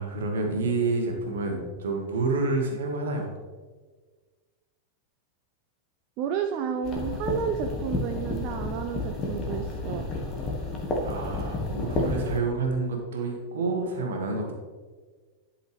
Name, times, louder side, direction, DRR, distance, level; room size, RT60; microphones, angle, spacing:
voice 1, 0.0-3.3 11.0-14.5, right 3 dB, 60° right, 2 dB, 1.6 m, -28 dB
voice 2, 6.2-10.1, right 7 dB, 40° right, 5 dB, 0.5 m, -31 dB
sound 1, 6.8-12.4, left 2 dB, 30° left, 1.5 m, -31 dB
11.0 x 5.7 x 3.4 m, 1.4 s
figure-of-eight pair, 90°, 0 cm